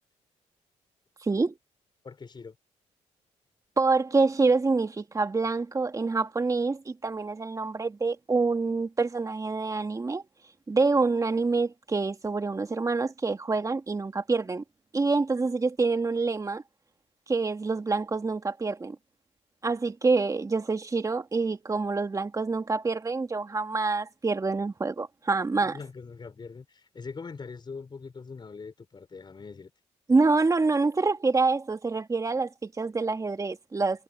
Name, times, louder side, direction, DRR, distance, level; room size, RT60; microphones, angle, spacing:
voice 1, 1.2-1.5 3.8-10.2 10.7-14.6 14.9-16.6 17.3-19.0 19.6-25.8 30.1-34.0, right 3 dB, 25° right, 2.1 m, -26 dB
voice 2, 2.0-2.5 25.6-29.7, left 4 dB, 35° left, 5.1 m, -42 dB
cardioid pair, 75°, 13 cm